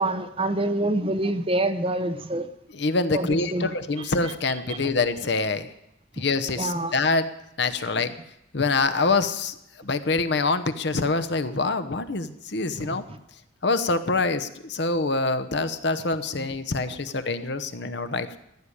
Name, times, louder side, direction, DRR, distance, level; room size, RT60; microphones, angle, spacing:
voice 1, 0.0-2.5 3.1-3.7 4.7-4.9 6.6-6.9 12.8-13.0 16.4-16.5 16.9-17.0, right 1 dB, 30° right, 11 dB, 0.8 m, -26 dB
voice 2, 2.7-5.7 6.2-7.3 7.6-8.1 8.5-13.0 13.6-18.4, left 3 dB, 60° left, 11 dB, 0.9 m, -25 dB
15.0 x 6.9 x 9.9 m, 0.84 s
head